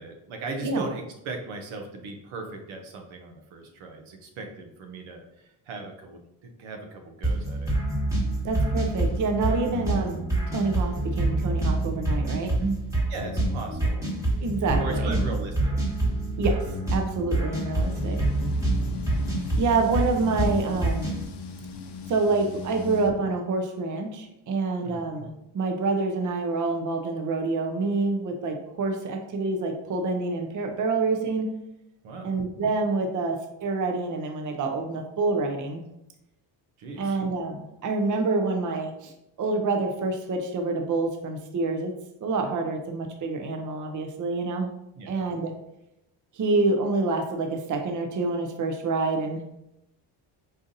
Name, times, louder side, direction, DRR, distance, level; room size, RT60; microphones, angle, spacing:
voice 1, 0.0-6.2 6.6-7.7 13.1-14.1 14.8-15.8 24.8-25.1 32.0-32.3 36.8-37.2 44.9-45.1, right 3 dB, 75° right, 3 dB, 0.7 m, -37 dB
sound 1, 7.2-21.2, right 2 dB, 5° right, 1.3 m, -27 dB
voice 2, 8.4-12.8 14.4-15.2 16.4-16.6 16.9-18.2 19.6-21.1 22.1-25.3 25.5-31.5 32.2-35.8 37.0-39.1 39.4-41.9 42.2-44.7 45.1-45.5 46.3-49.4, right 3 dB, 40° right, 4 dB, 0.6 m, -27 dB
sound 2, 17.8-23.1, left 5 dB, 55° left, 0.6 m, -38 dB
4.0 x 2.5 x 2.6 m, 0.86 s
supercardioid pair, 60°, 48 cm